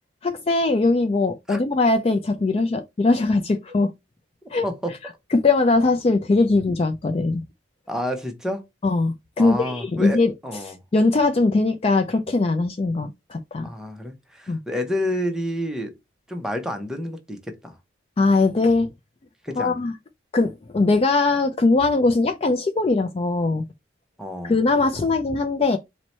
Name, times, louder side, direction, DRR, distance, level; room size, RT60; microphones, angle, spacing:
voice 1, 0.2-3.9 4.5-4.7 5.3-7.4 8.8-10.3 10.7-13.7 14.5-14.6 18.2-18.9 19.6-19.9 20.3-23.6 24.4-25.8, left 3 dB, 30° left, 0.3 m, -21 dB
voice 2, 4.6-4.9 7.9-8.6 9.4-10.7 13.6-15.9 16.3-17.8 19.4-19.8 24.2-24.5, equal, 5° right, 0.6 m, -29 dB
4.5 x 2.1 x 4.1 m
head